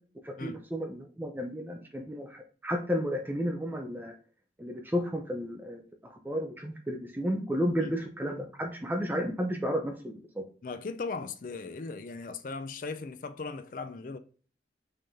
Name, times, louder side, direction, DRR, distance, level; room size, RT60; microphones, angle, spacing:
voice 1, 0.2-4.1 4.6-10.4, equal, 10° right, 0.6 m, -32 dB
voice 2, 10.6-14.2, left 4 dB, 50° left, 0.4 m, -38 dB
5.6 x 3.4 x 2.7 m
head